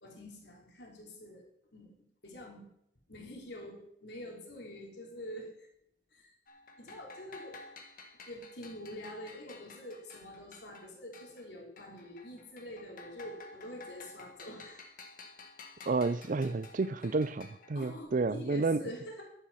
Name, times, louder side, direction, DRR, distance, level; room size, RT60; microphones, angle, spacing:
voice 1, 0.0-1.5 1.7-1.9 2.2-2.7 3.1-5.7 6.1-6.3 6.8-7.6 8.3-14.8 17.7-19.2, left 1 dB, 70° left, 3.3 m, -46 dB
sound 1, 6.5-11.5 11.8-18.0, left 3 dB, 50° left, 1.7 m, -52 dB
voice 2, 15.9-18.8, right 3 dB, 45° right, 0.5 m, -30 dB
11.5 x 9.2 x 5.5 m
head